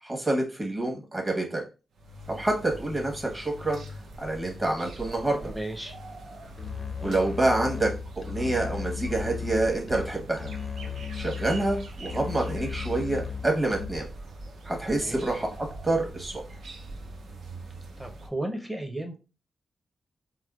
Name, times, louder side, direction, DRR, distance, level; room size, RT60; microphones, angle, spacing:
voice 1, 0.0-1.6 2.3-3.8 4.2-5.4 7.0-7.9 8.2-10.5 11.1-14.1 14.6-15.5 15.8-16.4, right 2 dB, 20° right, 0 dB, 1.0 m, -27 dB
sound 1, 1.9-18.3, right 2 dB, 85° right, 0.6 m, -43 dB
voice 2, 5.4-5.9 15.0-15.2 18.0-19.2, right 1 dB, 5° right, 3 dB, 0.6 m, -34 dB
Musical instrument, 6.6-14.2, left 7 dB, 30° left, 0.4 m, -36 dB
4.3 x 2.1 x 2.3 m, 0.32 s
wide cardioid pair, 110°, 0 cm